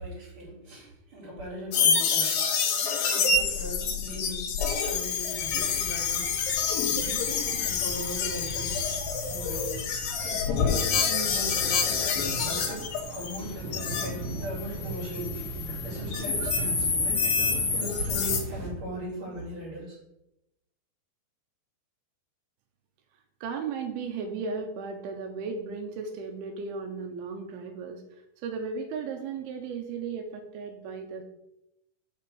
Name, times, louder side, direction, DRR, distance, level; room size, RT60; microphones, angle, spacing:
voice 1, 0.0-2.6 3.0-6.6 7.0-8.9 9.3-9.8 10.2-20.0, right 1 dB, 35° right, -5 dB, 3.6 m, -39 dB
sound 1, 1.7-14.1 14.4-18.4, left 5 dB, 70° left, 2.8 m, -28 dB
Alarm, 4.6-9.2, left 10 dB, 85° left, 2.6 m, -34 dB
sound 2, 5.4-18.7, right 2 dB, 55° right, 3.2 m, -39 dB
voice 2, 23.4-28.0 28.4-31.2, right 5 dB, 85° right, 4 dB, 2.6 m, -35 dB
6.0 x 5.7 x 6.3 m, 0.87 s
omnidirectional pair, 4.4 m